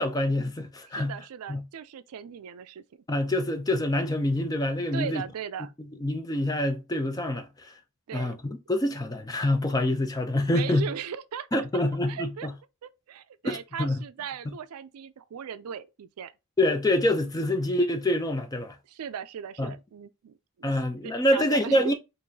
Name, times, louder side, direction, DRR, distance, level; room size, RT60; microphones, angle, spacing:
voice 1, 0.0-1.1 1.5-1.6 3.1-5.2 6.0-7.7 8.1-10.8 11.5-12.5 13.4-14.0 16.6-18.8 19.6-19.7 20.6-21.9, left 1 dB, 15° left, 0.5 m, -26 dB
voice 2, 0.9-2.8 4.9-5.7 8.1-8.4 10.5-12.5 12.8-16.3 18.9-20.4 21.0-21.9, right 7 dB, 80° right, 0.4 m, -38 dB
4.6 x 2.5 x 2.7 m
head